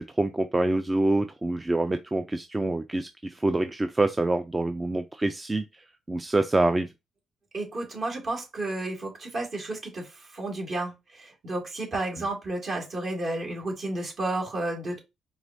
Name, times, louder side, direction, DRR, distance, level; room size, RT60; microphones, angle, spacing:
voice 1, 0.0-6.9, right 2 dB, 20° right, 0.4 m, -26 dB
voice 2, 7.5-15.0, right 2 dB, 45° right, 2.0 m, -32 dB
4.8 x 3.1 x 2.6 m
cardioid pair, 90°, 0 cm